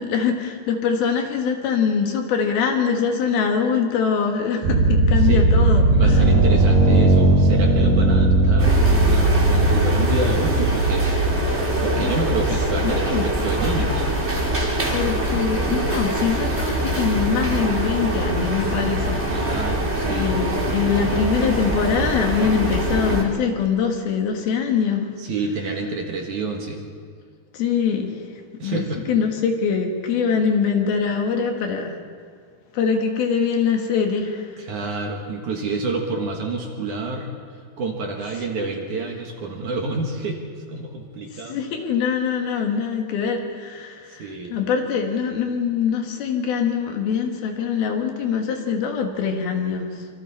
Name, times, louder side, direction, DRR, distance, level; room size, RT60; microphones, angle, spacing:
voice 1, 0.0-6.3 12.0-12.3 12.8-13.3 14.9-19.8 20.1-25.1 27.5-28.2 28.6-32.0 32.7-34.6 38.4-38.7 41.3-50.0, left 6 dB, 70° left, 3 dB, 3.4 m, -23 dB
sound 1, 4.6-13.7, right 2 dB, 80° right, 6.1 m, -18 dB
voice 2, 5.9-8.8 9.1-11.1 11.8-14.1 19.3-20.4 25.2-26.8 28.6-29.0 34.6-37.3 37.8-40.4 40.7-41.6 44.2-44.6, right 3 dB, 55° right, 1 dB, 2.8 m, -28 dB
sound 2, 8.6-23.2, right 1 dB, 20° right, 2.2 m, -24 dB
26.0 x 25.5 x 4.3 m, 2.1 s
omnidirectional pair, 4.8 m